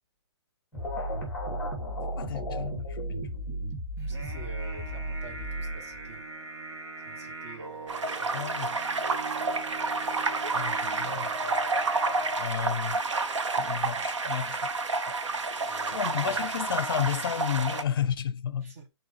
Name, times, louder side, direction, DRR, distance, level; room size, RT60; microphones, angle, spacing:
sound 1, 0.7-6.2, right 1 dB, ahead, 2.4 m, -34 dB
voice 1, 2.2-3.4 8.3-8.8 10.5-11.3 12.4-14.6 14.9-15.0 15.9-18.7, left 9 dB, 50° left, 0.7 m, -32 dB
sound 2, 4.0-12.5, right 2 dB, 65° right, 2.7 m, -40 dB
voice 2, 4.1-6.3 7.0-8.4 11.1-11.6 15.5-16.5 18.6-18.9, right 3 dB, 30° right, 1.5 m, -48 dB
sound 3, 7.9-17.8, right 3 dB, 80° right, 1.2 m, -30 dB
9.5 x 4.3 x 3.2 m
hypercardioid pair, 170°, 15 cm